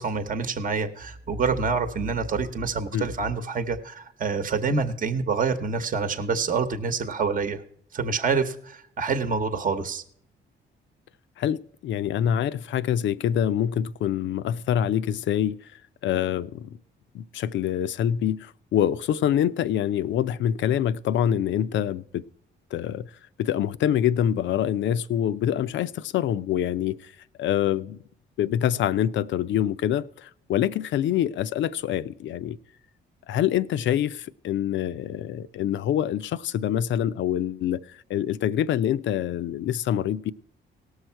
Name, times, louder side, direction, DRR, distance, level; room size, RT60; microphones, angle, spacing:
voice 1, 0.0-7.6 7.9-10.0, right 5 dB, 40° right, 1.0 m, -27 dB
voice 2, 11.4-15.5 16.0-16.8 17.1-22.2 22.7-23.1 23.4-27.1 27.4-28.0 28.4-32.6 33.3-40.3, left 10 dB, 70° left, 0.5 m, -25 dB
18.0 x 6.5 x 4.5 m
cardioid pair, 90°, 20 cm